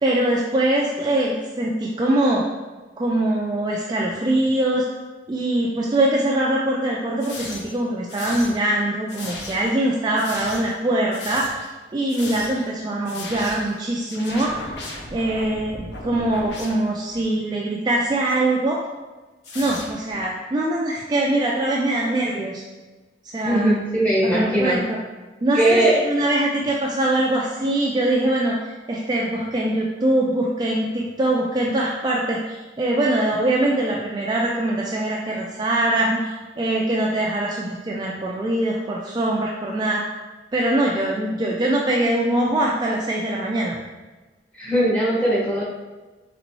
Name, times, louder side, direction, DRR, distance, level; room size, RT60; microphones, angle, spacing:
voice 1, 0.0-2.4 3.0-4.9 5.3-11.5 11.9-14.5 15.1-18.8 19.5-22.6 23.3-23.7 24.2-25.0 25.4-28.6 28.9-36.2 36.6-40.0 40.5-43.8, right 1 dB, 25° right, -3 dB, 0.3 m, -22 dB
sound 1, 7.2-7.8 8.1-8.7 9.1-9.7 10.2-10.8 11.1-11.7 12.1-12.7 13.1-13.8 14.1-17.2 18.2-18.4 19.4-20.2, left 2 dB, 70° left, 0.6 m, -36 dB
voice 2, 23.4-24.8 25.5-26.0 44.6-45.6, right 1 dB, 10° left, -5 dB, 0.9 m, -19 dB
4.0 x 3.3 x 3.0 m, 1.2 s
head